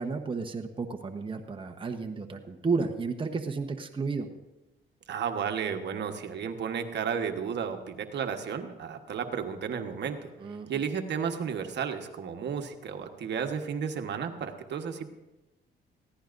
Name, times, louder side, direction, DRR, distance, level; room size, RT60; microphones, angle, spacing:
voice 1, 0.0-4.3 10.4-10.7, right 4 dB, 25° right, 5 dB, 1.0 m, -32 dB
voice 2, 5.1-10.3 10.7-15.1, right 7 dB, 60° right, 5 dB, 1.3 m, -33 dB
20.5 x 15.5 x 2.6 m, 1.0 s
cardioid pair, 90°, 20 cm